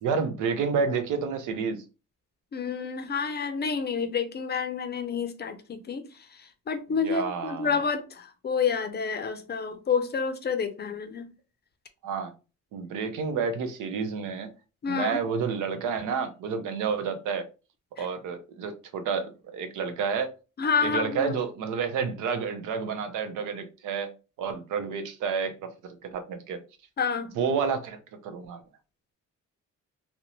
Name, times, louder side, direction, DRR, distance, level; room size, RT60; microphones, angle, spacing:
voice 1, 0.0-1.8 6.9-7.8 12.0-12.3 12.7-14.5 14.9-17.4 18.0-20.3 20.8-24.1 24.4-25.6 26.0-26.6 27.4-28.0 28.2-28.6, right 6 dB, 85° right, 0.6 m, -30 dB
voice 2, 2.5-6.0 6.4-11.3 14.8-15.2 18.0-18.1 20.6-21.3 27.0-27.4, left 6 dB, 35° left, 0.5 m, -29 dB
2.5 x 2.1 x 2.9 m
cardioid pair, 90°, 30 cm